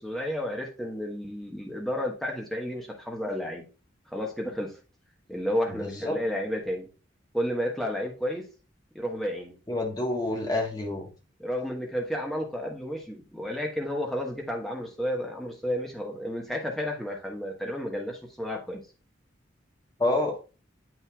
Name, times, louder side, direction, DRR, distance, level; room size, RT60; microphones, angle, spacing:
voice 1, 0.0-3.6 4.1-4.8 5.3-6.9 7.3-8.4 8.9-9.5 11.4-18.8, equal, ahead, 1.2 m, -31 dB
voice 2, 5.7-6.2 9.7-11.1 20.0-20.4, left 2 dB, 20° left, 1.3 m, -28 dB
7.9 x 5.9 x 2.3 m
head